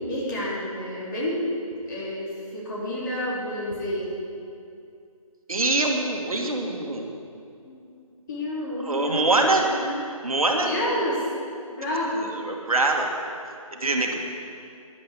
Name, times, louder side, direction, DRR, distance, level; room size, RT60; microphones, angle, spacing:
voice 1, 0.1-1.4 1.9-4.1 7.6-7.9 8.3-10.0 10.6-11.2 11.8-12.3, left 1 dB, 30° left, -7 dB, 3.7 m, -29 dB
voice 2, 5.5-7.1 8.8-9.7 10.2-10.7 12.2-13.1 13.7-14.2, right 2 dB, 70° right, 2 dB, 1.8 m, -24 dB
12.5 x 10.5 x 5.2 m, 2.4 s
figure-of-eight pair, 160°, 19 cm